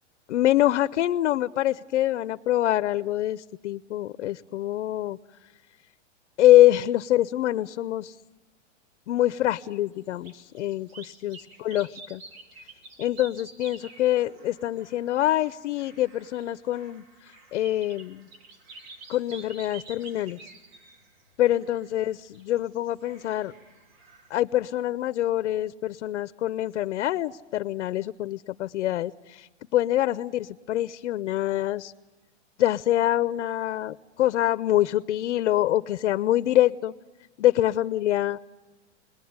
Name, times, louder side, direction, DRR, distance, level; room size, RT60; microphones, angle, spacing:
voice 1, 0.3-5.2 6.4-8.1 9.1-12.2 13.0-17.0 17.5-18.3 19.1-20.4 21.4-23.5 24.3-31.9 32.6-36.9 37.4-38.4, left 14 dB, 75° left, 14 dB, 0.8 m, -25 dB
sound 1, 10.1-24.4, right 3 dB, 60° right, 3.6 m, -49 dB
29.0 x 20.5 x 9.6 m, 1.2 s
supercardioid pair, 145°, 35 cm